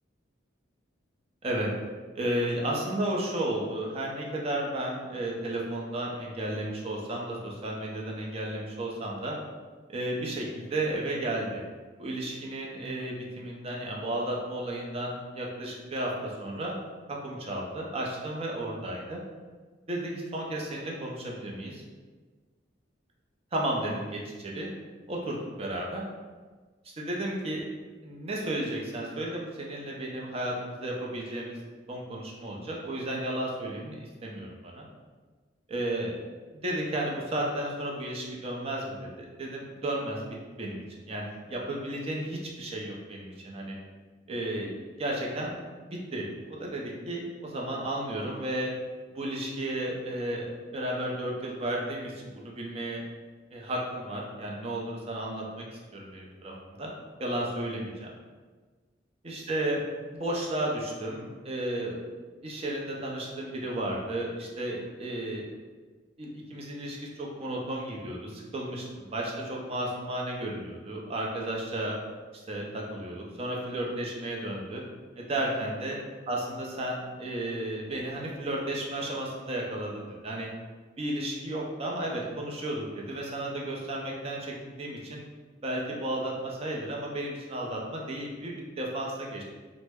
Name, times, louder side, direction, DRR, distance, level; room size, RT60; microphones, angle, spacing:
voice 1, 2.2-9.4 9.9-11.6 12.0-16.7 17.1-19.2 19.9-21.8 23.5-24.7 25.1-26.0 27.0-27.6 28.0-31.6 31.9-34.9 35.7-36.1 36.5-40.2 40.6-43.7 44.3-44.7 45.0-45.5 45.8-48.7 49.1-52.1 52.4-53.0 53.5-56.9 57.2-58.1 59.2-59.8 60.1-62.0 62.4-65.5 66.2-72.0 72.5-74.8 75.2-76.0 76.3-80.5 81.0-85.2 85.6-89.4, right 1 dB, 30° right, -2 dB, 0.5 m, -33 dB
3.1 x 2.0 x 3.4 m, 1.4 s
head